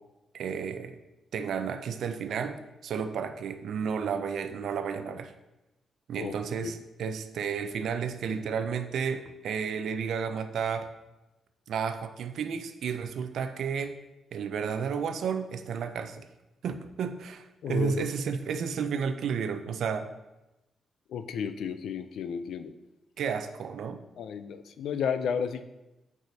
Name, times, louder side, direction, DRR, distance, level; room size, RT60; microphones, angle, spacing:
voice 1, 0.3-1.0 1.3-5.3 6.1-10.9 11.7-13.9 14.3-16.3 16.6-20.1 23.2-24.0, right 6 dB, 65° right, 8 dB, 0.4 m, -32 dB
voice 2, 17.6-18.0 21.1-22.7 24.2-25.6, left 7 dB, 70° left, 10 dB, 0.4 m, -32 dB
7.9 x 4.8 x 2.7 m, 0.99 s
wide cardioid pair, 170°, 0 cm